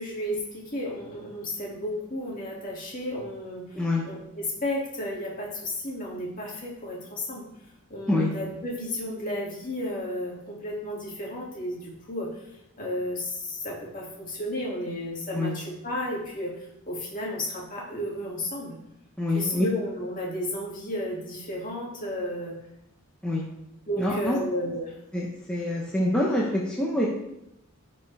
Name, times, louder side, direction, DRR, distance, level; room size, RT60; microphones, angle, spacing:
voice 1, 0.0-7.5 7.9-18.8 19.3-22.5 23.9-25.0, left 1 dB, 40° left, -4 dB, 2.6 m, -33 dB
voice 2, 3.7-4.1 8.1-8.3 15.3-15.6 19.2-19.6 23.2-23.5 24.0-24.4 25.1-27.1, left 1 dB, 5° left, -5 dB, 1.0 m, -26 dB
12.0 x 5.4 x 3.5 m, 0.87 s
head